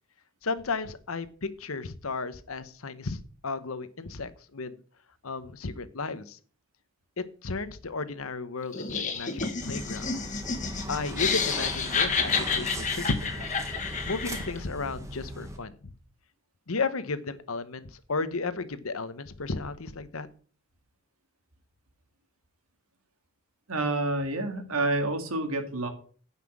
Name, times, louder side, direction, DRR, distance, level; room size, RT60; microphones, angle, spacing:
voice 1, 0.4-4.8 5.2-6.4 7.2-10.1 10.9-13.4 14.0-15.9 16.7-20.3, left 3 dB, 75° left, 13 dB, 1.0 m, -34 dB
Laughter, 8.7-14.6, left 5 dB, 35° left, 1.7 m, -30 dB
sound 1, 9.6-15.6, right 1 dB, 15° right, 1.5 m, -38 dB
voice 2, 23.7-25.9, right 2 dB, 75° right, 6 dB, 2.2 m, -28 dB
9.5 x 5.9 x 7.3 m, 0.43 s
head